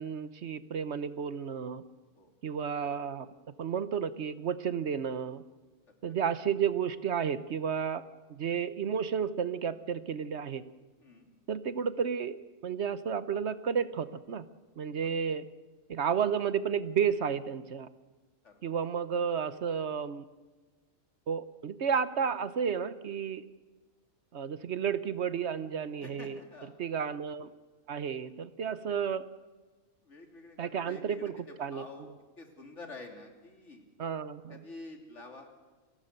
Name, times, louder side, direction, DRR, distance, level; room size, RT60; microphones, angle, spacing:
voice 1, 0.0-1.8 2.4-3.3 3.6-5.4 6.0-8.0 8.3-10.6 11.5-12.4 12.6-14.5 14.8-15.4 15.9-17.9 18.6-20.2 21.3-23.5 24.3-26.4 26.8-27.5 27.9-29.2 30.6-31.3 31.6-31.8 34.0-34.6, right 7 dB, 55° right, 14 dB, 1.1 m, -32 dB
voice 2, 26.0-26.7 30.0-32.1 32.4-33.9 34.5-35.5, left 2 dB, 55° left, 3 dB, 3.3 m, -48 dB
29.0 x 17.5 x 6.7 m, 1.3 s
omnidirectional pair, 1.4 m